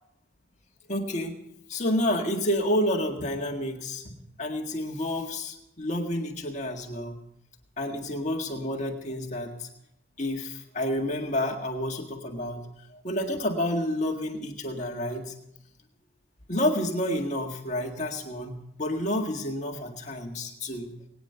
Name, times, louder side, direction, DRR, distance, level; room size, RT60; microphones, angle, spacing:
voice 1, 0.9-1.3 1.7-7.2 7.8-9.7 10.2-12.7 12.9-15.3 16.5-20.9, left 1 dB, 35° left, 2 dB, 1.8 m, -29 dB
21.0 x 9.6 x 5.7 m, 0.80 s
head